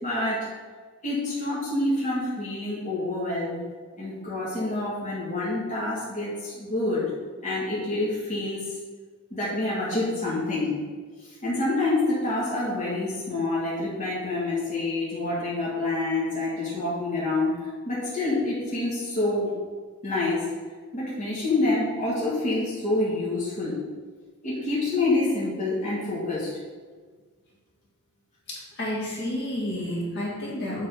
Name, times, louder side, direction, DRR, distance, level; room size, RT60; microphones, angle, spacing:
voice 1, 0.0-0.5 1.0-3.6 4.0-7.1 7.4-8.7 9.3-10.7 11.4-17.5 17.9-19.5 20.0-20.4 20.9-23.7 24.4-26.5, left 2 dB, 35° left, -8 dB, 1.8 m, -27 dB
voice 2, 28.5-30.9, left 1 dB, 55° left, -5 dB, 2.0 m, -30 dB
7.0 x 4.1 x 5.1 m, 1.5 s
head